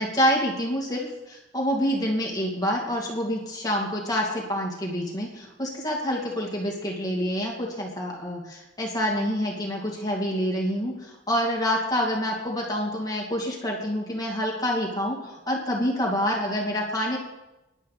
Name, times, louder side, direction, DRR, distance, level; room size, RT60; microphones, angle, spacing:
voice 1, 0.0-17.2, equal, 20° left, -2 dB, 2.5 m, -27 dB
23.0 x 11.5 x 4.2 m, 1.0 s
head